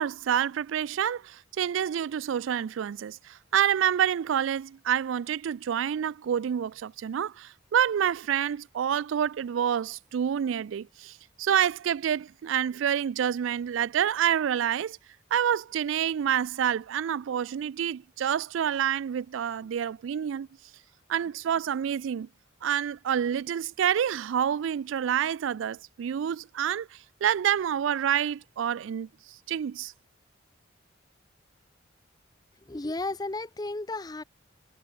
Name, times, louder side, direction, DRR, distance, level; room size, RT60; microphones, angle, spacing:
voice 1, 0.0-15.0 15.3-20.5 21.1-22.3 22.6-29.1 29.5-29.9, right 9 dB, 75° right, 0.3 m, -28 dB
voice 2, 32.7-34.2, left 2 dB, 20° left, 0.6 m, -33 dB
head